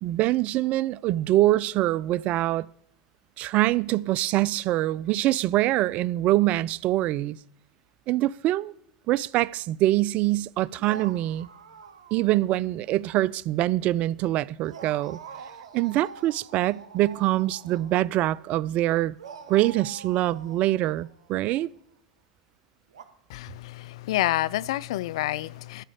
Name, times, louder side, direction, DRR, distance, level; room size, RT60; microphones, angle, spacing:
voice 1, 0.0-2.7 3.4-7.4 8.1-8.7 9.1-11.5 12.1-15.2 15.7-19.2 19.5-21.7, right 15 dB, 45° right, 0.3 m, -24 dB
sound 1, 10.8-12.7 13.0-13.1 14.6-18.5 19.2-21.6 22.9-23.1, right 6 dB, 75° right, 1.1 m, -46 dB
voice 2, 23.3-25.8, left 15 dB, 65° left, 0.3 m, -28 dB
12.5 x 5.1 x 8.2 m
figure-of-eight pair, 80°, 3 cm